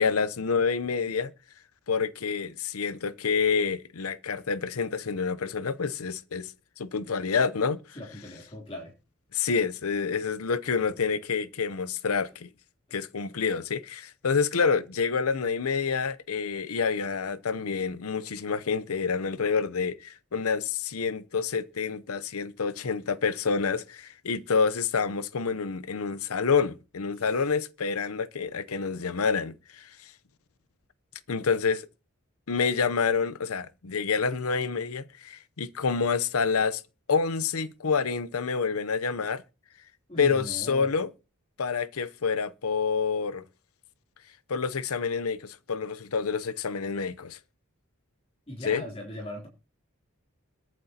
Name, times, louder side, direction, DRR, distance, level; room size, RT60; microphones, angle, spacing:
voice 1, 0.0-1.3 1.9-6.5 6.8-7.8 9.3-12.5 12.9-29.9 31.3-31.9 32.5-36.8 37.1-39.4 40.2-41.1 41.6-43.4 44.5-47.4 48.7-48.8, left 5 dB, 90° left, 0.7 m, -28 dB
voice 2, 7.9-8.9 27.1-27.2 40.1-40.9 48.5-49.5, left 1 dB, 30° left, 3.1 m, -39 dB
22.0 x 7.7 x 2.8 m
head